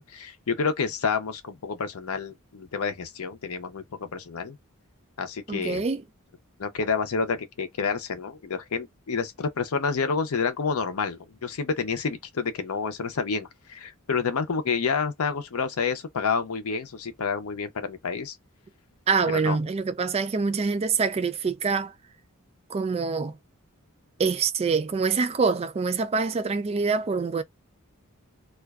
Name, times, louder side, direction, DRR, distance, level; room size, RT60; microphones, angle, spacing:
voice 1, 0.0-4.6 5.2-5.9 6.6-18.4 19.3-19.6, left 5 dB, 75° left, 0.6 m, -29 dB
voice 2, 5.5-6.0 19.1-21.9 22.7-23.4 24.2-27.4, right 5 dB, 30° right, 0.3 m, -25 dB
2.4 x 2.2 x 2.3 m
head